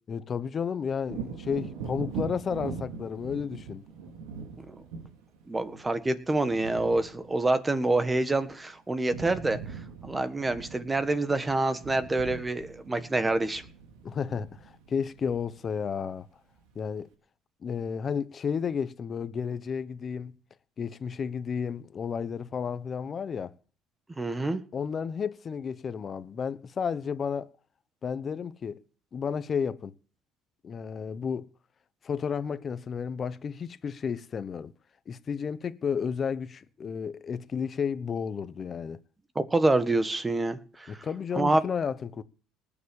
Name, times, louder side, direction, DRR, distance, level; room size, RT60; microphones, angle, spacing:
voice 1, 0.1-3.8 14.0-14.6 14.9-16.3 16.7-17.1 17.6-20.3 20.8-23.5 24.7-27.5 28.0-28.8 29.1-29.9 30.6-31.5 32.0-34.7 35.1-39.0 40.9-42.2, left 6 dB, 35° left, 1.1 m, -32 dB
Wind / Thunder, 1.0-8.6 8.9-16.1 16.6-16.7, right 5 dB, 90° right, 3.5 m, -42 dB
voice 2, 5.5-9.6 10.0-13.6 24.2-24.6 39.3-41.0 41.3-41.6, right 2 dB, 15° right, 1.5 m, -27 dB
19.5 x 7.3 x 7.2 m
cardioid pair, 120°, 0 cm